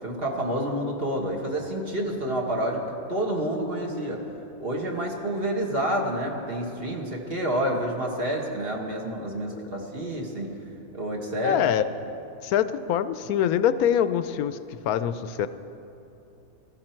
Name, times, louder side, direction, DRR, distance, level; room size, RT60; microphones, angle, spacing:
voice 1, 0.0-2.8 3.1-4.3 4.6-10.6 10.9-11.6, right 1 dB, 40° right, 0 dB, 1.6 m, -29 dB
voice 2, 11.4-11.8 12.4-15.5, left 10 dB, 80° left, 13 dB, 1.1 m, -24 dB
18.0 x 14.0 x 4.5 m, 2.9 s
omnidirectional pair, 1.5 m